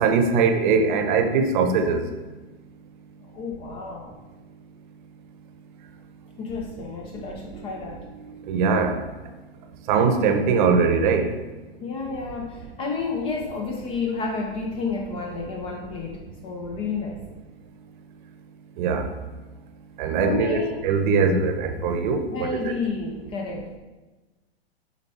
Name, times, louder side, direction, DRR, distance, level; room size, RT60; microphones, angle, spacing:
voice 1, 0.0-2.0 8.5-9.0 9.9-11.3 18.8-19.0 20.0-22.7, right 5 dB, 50° right, 7 dB, 0.8 m, -21 dB
voice 2, 3.2-4.2 6.4-8.1 11.8-17.2 20.2-20.8 22.3-23.8, left 4 dB, 20° left, 2 dB, 0.4 m, -31 dB
7.1 x 3.9 x 4.1 m, 1.2 s
hypercardioid pair, 125°, 32 cm